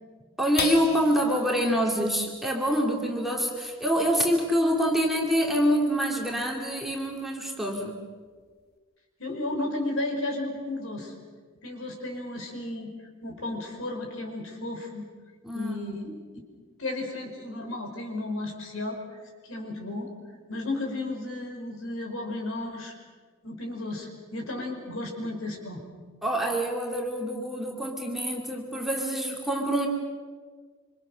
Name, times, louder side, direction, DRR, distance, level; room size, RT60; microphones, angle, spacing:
voice 1, 0.4-8.0 15.4-15.8 26.2-29.9, equal, ahead, -1 dB, 2.5 m, -26 dB
sound 1, 0.6-7.3 7.8-7.9 8.3-8.7, left 4 dB, 45° left, 1.8 m, -40 dB
voice 2, 9.2-11.1 11.6-12.9 13.2-15.1 15.5-16.2 16.8-19.0 19.5-20.1 20.5-22.9 23.4-25.8, left 2 dB, 60° left, 2 dB, 5.6 m, -33 dB
27.5 x 26.0 x 6.4 m, 1.5 s
head